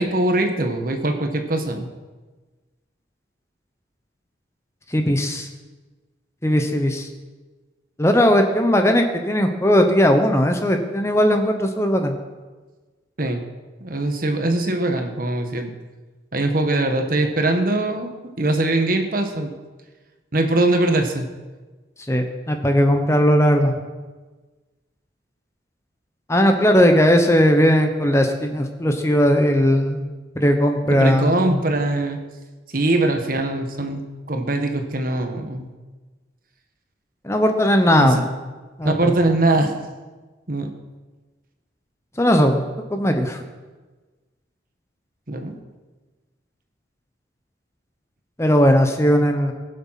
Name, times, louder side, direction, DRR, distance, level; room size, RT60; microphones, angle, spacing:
voice 1, 0.0-1.9 13.2-13.4 13.8-15.7 16.3-19.5 20.3-21.3 30.8-32.2 32.7-34.0 34.3-35.7 38.0-38.2 38.8-39.8 40.5-40.7 45.3-45.6, right 2 dB, 50° right, 5 dB, 1.4 m, -22 dB
voice 2, 4.9-5.5 6.4-7.1 8.0-12.1 22.1-23.7 26.3-30.0 30.4-31.6 37.2-38.2 38.8-39.0 42.2-42.6 42.9-43.4 48.4-49.5, equal, 15° left, 5 dB, 1.0 m, -18 dB
21.5 x 7.4 x 5.9 m, 1.3 s
head